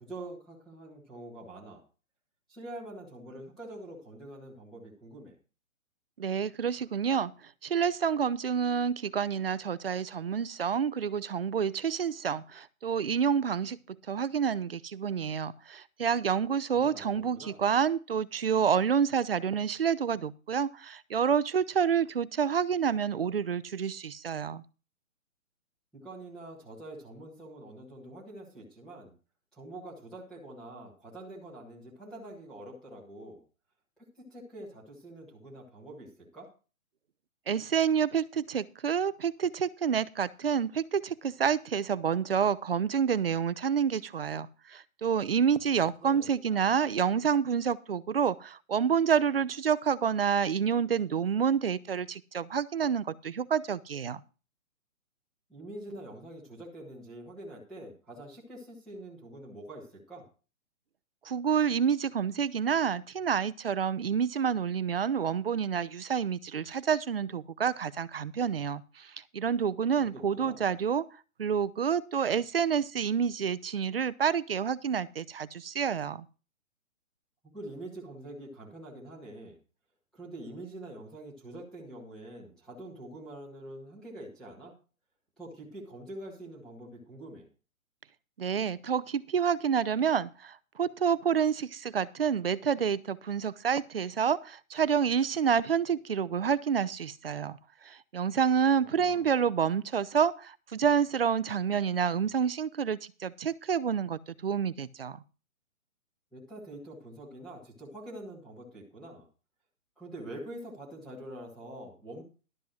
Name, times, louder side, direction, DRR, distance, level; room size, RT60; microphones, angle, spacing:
voice 1, 0.0-1.8 2.5-5.4 16.7-17.6 25.9-29.1 29.5-33.4 34.3-36.5 46.0-46.7 55.5-60.2 70.0-70.7 77.4-79.6 80.1-84.7 85.4-87.5 98.9-99.3 106.3-109.3 110.0-112.2, right 1 dB, ahead, -5 dB, 1.6 m, -45 dB
voice 2, 6.2-7.3 7.6-24.6 37.5-54.2 61.3-71.1 71.4-76.2 88.4-97.6 97.8-105.2, right 7 dB, 45° right, 18 dB, 0.6 m, -28 dB
12.0 x 5.9 x 6.2 m, 0.34 s
hypercardioid pair, 170°, 41 cm